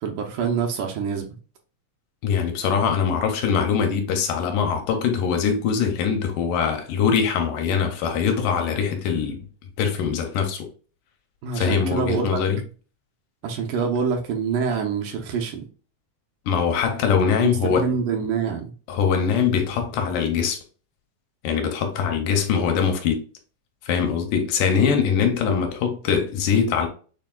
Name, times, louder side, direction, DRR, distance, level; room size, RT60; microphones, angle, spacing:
voice 1, 0.0-1.3 11.4-12.4 13.4-15.6 17.4-18.7, right 6 dB, 75° right, 2.1 m, -26 dB
voice 2, 2.2-9.4 9.8-10.7 11.5-12.6 16.5-17.9 18.9-20.6 21.4-23.2 23.8-26.9, left 6 dB, 80° left, 2.2 m, -22 dB
6.9 x 3.4 x 2.2 m
omnidirectional pair, 4.0 m